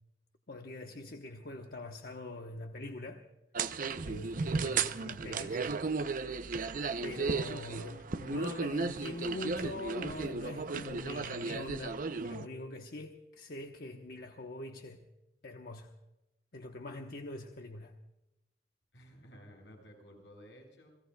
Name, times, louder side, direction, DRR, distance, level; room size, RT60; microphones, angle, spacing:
voice 1, 0.5-3.2 4.0-5.6 7.0-15.0 15.4-15.9 16.5-17.9, left 2 dB, 60° left, 1.0 m, -43 dB
sound 1, 3.5-12.4, right 4 dB, 50° right, 0.6 m, -35 dB
voice 2, 18.9-20.9, equal, 85° left, 8.0 m, -54 dB
29.5 x 17.5 x 2.3 m
head